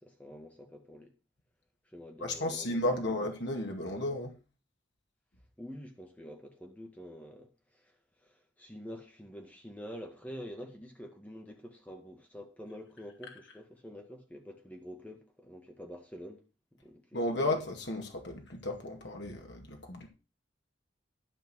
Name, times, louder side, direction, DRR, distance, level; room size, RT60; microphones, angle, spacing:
voice 1, 0.0-1.1 1.9-3.1 5.6-16.4 16.7-17.4, equal, 10° left, 1.9 m, -47 dB
voice 2, 2.2-4.3 17.1-20.1, left 1 dB, 65° left, 2.3 m, -33 dB
12.5 x 5.0 x 6.4 m
head